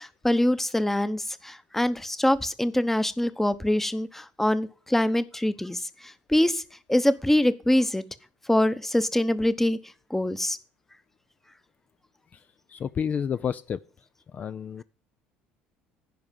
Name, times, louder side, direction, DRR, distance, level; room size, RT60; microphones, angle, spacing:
voice 1, 0.0-6.6 6.9-8.0 8.5-9.8 10.1-10.6, left 1 dB, 5° left, 0.9 m, -24 dB
voice 2, 12.7-13.8 14.3-14.8, left 7 dB, 40° left, 0.4 m, -30 dB
10.5 x 4.9 x 7.3 m
supercardioid pair, 80°, 4 cm